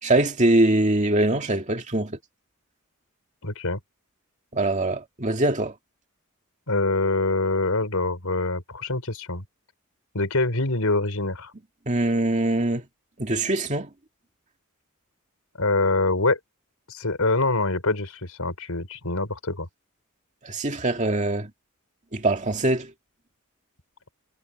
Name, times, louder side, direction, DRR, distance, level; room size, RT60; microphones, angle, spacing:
voice 1, 0.0-2.2 4.5-5.7 11.9-12.8 13.2-13.9 20.4-21.5 22.1-22.9, right 2 dB, 35° right, 2.2 m, -23 dB
voice 2, 3.4-3.8 6.7-9.4 10.1-11.5 15.6-16.4 16.9-19.7, left 2 dB, 85° left, 4.5 m, -25 dB
head